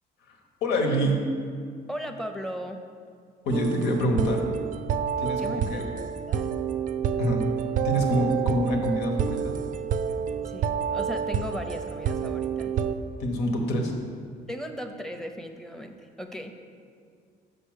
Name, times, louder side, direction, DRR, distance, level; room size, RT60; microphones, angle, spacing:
voice 1, 0.3-1.1 3.4-4.5 5.2-5.8 7.2-7.4 7.8-9.5 13.2-13.9, equal, 90° left, 2 dB, 1.2 m, -26 dB
voice 2, 1.9-2.8 5.4-6.5 10.4-12.7 14.5-16.5, equal, 5° left, 6 dB, 0.6 m, -37 dB
sound 1, 3.5-13.0, right 8 dB, 50° right, 0.4 m, -29 dB
6.8 x 5.2 x 6.5 m, 2.1 s
cardioid pair, 110°, 17 cm